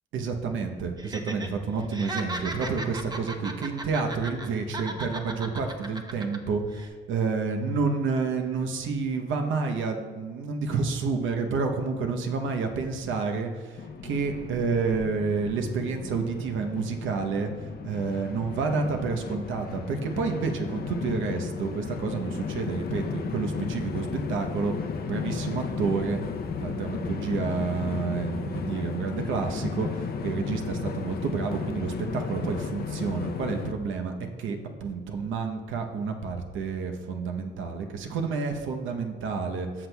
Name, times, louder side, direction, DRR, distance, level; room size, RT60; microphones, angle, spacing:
voice 1, 0.1-17.5 17.8-24.7 25.1-26.2 26.6-34.1 34.4-39.9, right 4 dB, 80° right, 4 dB, 0.9 m, -29 dB
Laughter, 1.0-1.5 1.8-4.5 4.7-6.4 6.7-6.9, right 2 dB, 20° right, 0.8 m, -36 dB
Train, 13.8-33.7, left 6 dB, 50° left, 0.6 m, -34 dB
13.5 x 6.2 x 2.3 m, 1.5 s
cardioid pair, 90°, 20 cm